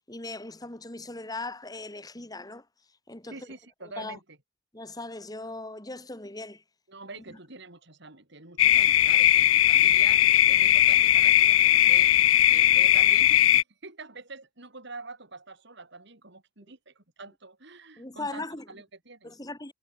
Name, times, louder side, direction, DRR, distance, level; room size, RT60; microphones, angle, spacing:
voice 1, 0.1-2.7 3.1-3.5 4.0-4.2 4.7-6.6 18.0-18.7 19.2-19.7, left 2 dB, 20° left, 1.9 m, -39 dB
voice 2, 3.3-4.4 6.9-12.1 12.5-19.4, right 3 dB, 55° right, 3.8 m, -45 dB
sound 1, 8.6-13.6, left 13 dB, 75° left, 0.5 m, -19 dB
head